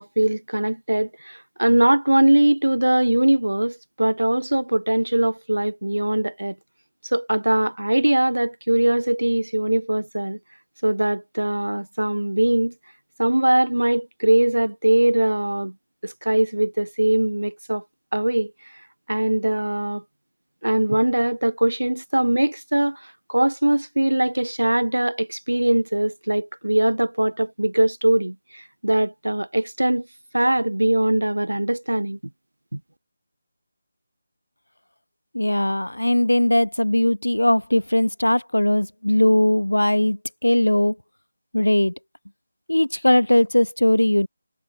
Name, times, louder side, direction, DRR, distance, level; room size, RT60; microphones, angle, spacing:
voice 1, 0.0-6.6 7.1-10.4 10.8-12.7 13.2-15.7 16.0-17.8 18.1-18.5 19.1-20.0 20.6-30.1 30.3-32.2 32.7-32.8, right 1 dB, 80° right, 0.8 m, -21 dB
voice 2, 35.3-41.0 41.5-41.9 42.7-44.3, left 1 dB, 85° left, 0.9 m, -19 dB
figure-of-eight pair, 155°, 0 cm